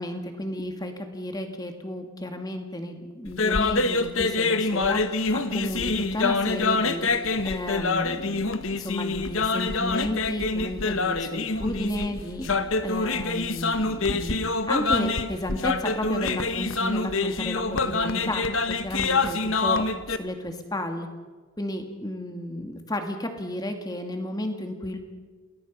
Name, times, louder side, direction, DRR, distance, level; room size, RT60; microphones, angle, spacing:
voice 1, 0.0-5.0 5.3-7.1 7.4-12.5 12.8-21.1 21.6-25.0, left 1 dB, 15° left, 5 dB, 2.2 m, -32 dB
sound 1, 3.3-20.2, left 3 dB, 65° left, 1.2 m, -26 dB
29.0 x 20.5 x 5.5 m, 1.4 s
head